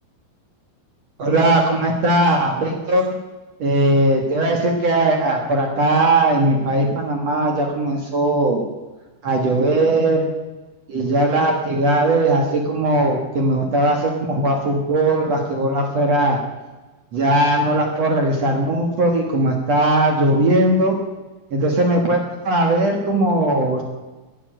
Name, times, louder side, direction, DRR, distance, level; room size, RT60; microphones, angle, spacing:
voice 1, 1.2-3.1 3.6-8.6 9.2-10.3 10.9-16.4 17.1-21.0 21.5-23.8, right 1 dB, 50° right, 2 dB, 2.5 m, -19 dB
18.5 x 10.5 x 7.7 m, 1.2 s
omnidirectional pair, 4.4 m